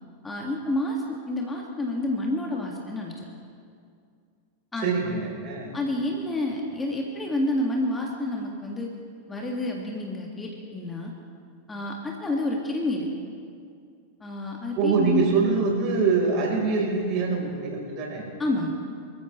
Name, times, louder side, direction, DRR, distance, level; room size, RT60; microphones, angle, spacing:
voice 1, 0.2-3.1 4.7-5.1 5.7-8.9 9.3-11.1 11.7-13.1 14.2-15.3 18.4-18.7, left 1 dB, 15° left, -1 dB, 2.0 m, -29 dB
voice 2, 4.8-5.8 14.8-18.3, right 4 dB, 40° right, -1 dB, 4.1 m, -24 dB
25.0 x 14.5 x 3.2 m, 2.3 s
figure-of-eight pair, 90°, 0 cm